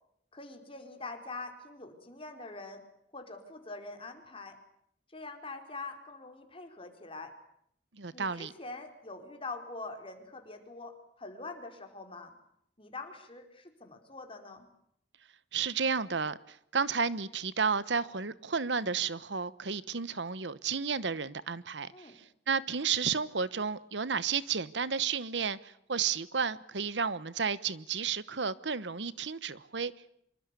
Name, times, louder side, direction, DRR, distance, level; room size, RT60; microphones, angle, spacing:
voice 1, 0.3-2.8 3.1-4.6 5.1-7.3 8.1-12.3 12.8-14.7 21.9-22.1, left 3 dB, 30° left, 4.7 m, -44 dB
voice 2, 7.9-8.5 15.5-22.1 22.5-29.9, right 6 dB, 75° right, 1.0 m, -32 dB
26.5 x 24.5 x 8.4 m
head